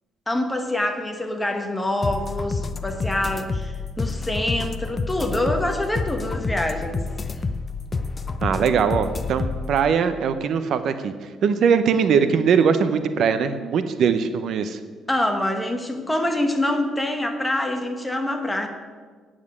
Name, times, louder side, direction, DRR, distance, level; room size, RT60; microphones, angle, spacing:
voice 1, 0.3-7.0 15.1-18.7, left 1 dB, 10° left, 4 dB, 1.3 m, -25 dB
sound 1, 2.0-9.8, left 4 dB, 25° left, 0.6 m, -28 dB
voice 2, 8.4-11.1 11.4-14.8, right 6 dB, 55° right, 10 dB, 0.7 m, -21 dB
9.6 x 7.4 x 8.3 m, 1.5 s
cardioid pair, 140°, 0 cm